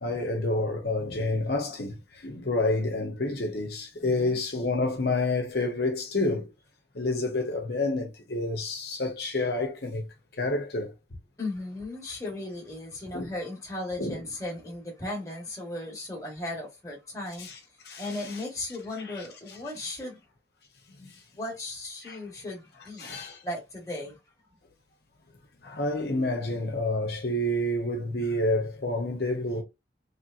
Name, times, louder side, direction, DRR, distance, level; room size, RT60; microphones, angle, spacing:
voice 1, 0.0-6.5 6.9-10.1 10.3-10.9 13.1-13.3 14.0-14.2 17.4-17.6 17.8-18.4 19.1-19.2 21.0-21.2 22.0-22.2 23.0-23.4 25.6-29.6, left 2 dB, 60° left, 0.8 m, -29 dB
voice 2, 4.0-4.4 11.4-17.5 18.0-20.2 21.4-23.2 23.4-24.2, left 2 dB, 15° left, 1.2 m, -36 dB
3.2 x 3.0 x 2.5 m
head